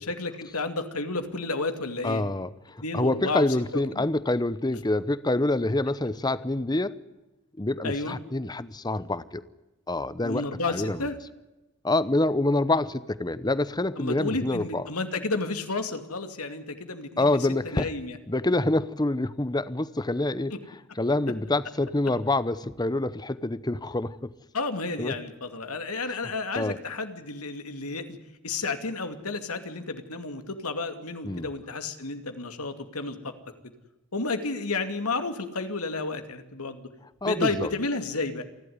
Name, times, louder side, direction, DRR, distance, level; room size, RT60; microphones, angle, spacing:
voice 1, 0.0-2.2 2.8-3.5 3.7-4.0 7.8-8.2 10.2-11.2 14.0-17.3 17.6-18.2 24.5-28.2 28.4-33.3 34.1-36.9 37.2-38.4, left 3 dB, 85° left, 7 dB, 2.5 m, -31 dB
voice 2, 2.0-6.9 7.6-9.4 9.9-11.1 11.8-14.8 17.2-17.9 18.3-24.3 25.0-25.1 26.1-26.2 26.6-26.8 31.2-31.5 37.2-37.7, left 2 dB, 20° left, 16 dB, 0.8 m, -27 dB
28.5 x 12.0 x 9.6 m, 1.0 s
head